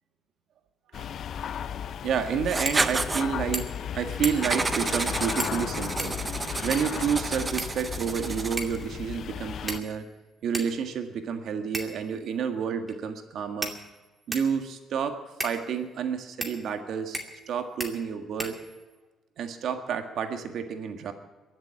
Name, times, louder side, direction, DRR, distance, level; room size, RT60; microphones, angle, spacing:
sound 1, 0.9-9.8, left 9 dB, 65° left, 0.5 m, -35 dB
voice 1, 2.0-6.2 6.6-10.1 10.4-13.7 14.3-17.2 17.5-18.6 19.4-21.1, right 7 dB, 70° right, 6 dB, 1.7 m, -30 dB
Writing, 2.5-3.3 4.4-8.8, right 3 dB, 25° right, 0.8 m, -30 dB
sound 2, 2.6-2.9 3.2-3.3 3.5-3.9 4.2-4.6 5.4-5.6 6.0-7.0 7.6-8.2 8.6-8.8 9.7-10.1 10.5-10.7 11.7-12.1 12.9-13.0 13.6-14.5 15.4-15.6 16.4-16.6 17.1-17.5 17.8-17.9 18.4-19.0, right 1 dB, 10° right, 2.5 m, -35 dB
22.0 x 7.5 x 8.5 m, 1.3 s
cardioid pair, 90°, 0 cm